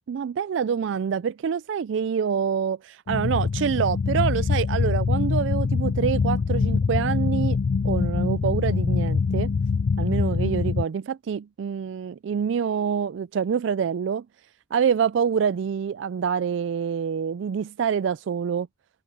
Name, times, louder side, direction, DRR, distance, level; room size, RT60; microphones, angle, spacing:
voice 1, 0.1-7.6 7.8-9.5 10.0-14.3 14.7-18.7, right 7 dB, 70° right, 0.3 m, -26 dB
sound 1, 3.1-10.8, left 5 dB, 50° left, 0.3 m, -24 dB
head